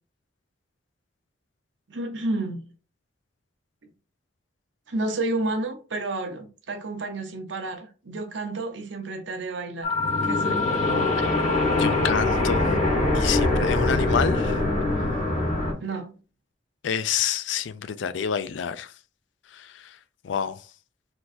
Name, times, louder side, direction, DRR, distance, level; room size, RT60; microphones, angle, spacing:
voice 1, 1.9-2.6 4.9-9.9 10.2-10.7 15.8-16.1, right 2 dB, 85° right, 0.9 m, -30 dB
sound 1, 9.8-15.7, left 2 dB, 40° left, 1.7 m, -23 dB
voice 2, 11.8-12.7 13.1-14.5 16.8-18.9 19.5-19.7 20.2-20.6, left 8 dB, 85° left, 0.4 m, -28 dB
4.5 x 3.9 x 2.6 m
head